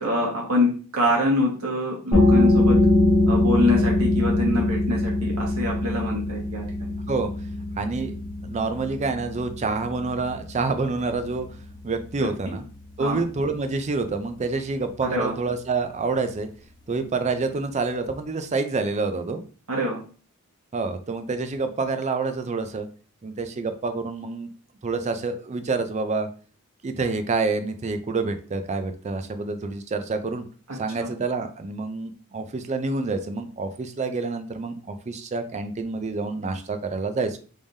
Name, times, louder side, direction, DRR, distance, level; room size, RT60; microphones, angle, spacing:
voice 1, 0.0-2.8 3.3-6.9 13.0-13.2 15.1-15.3 19.7-20.0 31.0-31.1, left 1 dB, 75° right, -2 dB, 1.4 m, -25 dB
sound 1, 2.1-13.5, left 2 dB, 20° left, 1.1 m, -23 dB
voice 2, 7.8-8.1 8.4-11.5 11.8-12.6 13.0-16.5 16.9-19.4 20.7-22.9 23.2-24.5 24.8-26.3 26.8-30.4 30.8-37.4, right 3 dB, 30° right, 8 dB, 0.4 m, -27 dB
3.5 x 3.2 x 2.6 m, 0.39 s
head